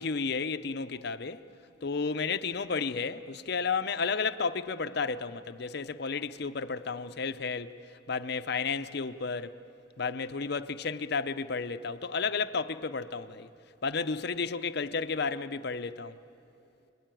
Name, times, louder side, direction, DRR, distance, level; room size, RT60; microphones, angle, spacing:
voice 1, 0.0-1.5 1.8-7.8 8.1-9.6 10.0-13.5 13.8-16.2, left 5 dB, 55° left, 0.6 m, -32 dB
27.5 x 22.0 x 9.1 m
head